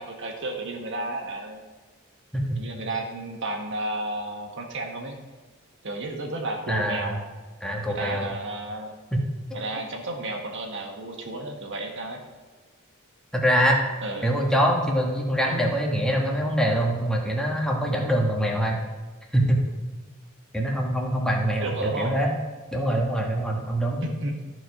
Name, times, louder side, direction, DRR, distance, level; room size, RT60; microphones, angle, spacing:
voice 1, 0.0-1.6 2.5-5.2 5.8-7.2 7.9-8.9 9.5-12.2 14.0-14.3 21.6-22.1 24.0-24.4, right 2 dB, 60° right, 2 dB, 1.5 m, -32 dB
voice 2, 6.7-7.2 7.6-8.3 9.1-9.2 9.5-9.6 13.3-13.8 14.2-18.8 19.3-19.6 20.5-22.3 22.7-24.0, equal, 5° left, -1 dB, 1.4 m, -24 dB
13.5 x 4.8 x 4.8 m, 1.3 s
head